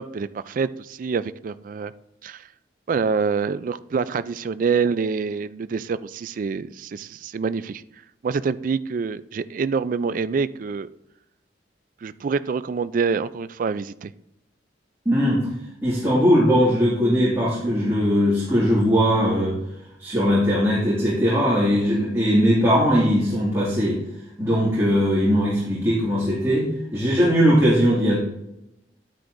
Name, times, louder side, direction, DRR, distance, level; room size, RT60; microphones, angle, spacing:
voice 1, 0.0-1.9 2.2-2.5 2.9-7.8 8.2-10.9 12.0-14.1, right 5 dB, 50° right, 15 dB, 0.3 m, -26 dB
voice 2, 15.1-15.4 15.8-19.6 20.0-24.0 24.4-28.2, equal, 15° right, -7 dB, 2.1 m, -20 dB
9.9 x 9.4 x 2.6 m, 0.85 s
head